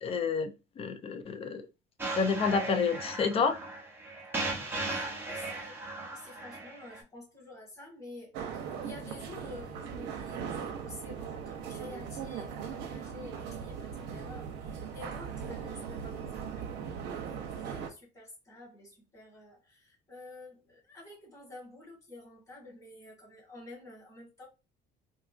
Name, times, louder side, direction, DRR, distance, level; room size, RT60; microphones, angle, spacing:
voice 1, 0.0-0.5 0.8-1.6 2.1-3.6 4.5-4.6, left 5 dB, 35° left, 0.5 m, -29 dB
sound 1, 2.0-7.0, right 2 dB, 10° right, 0.6 m, -37 dB
voice 2, 4.8-8.3 8.7-24.5, left 2 dB, 15° left, 1.7 m, -50 dB
sound 2, 8.3-17.9, right 7 dB, 80° right, 0.7 m, -39 dB
3.7 x 2.4 x 2.4 m
cardioid pair, 150°, 18 cm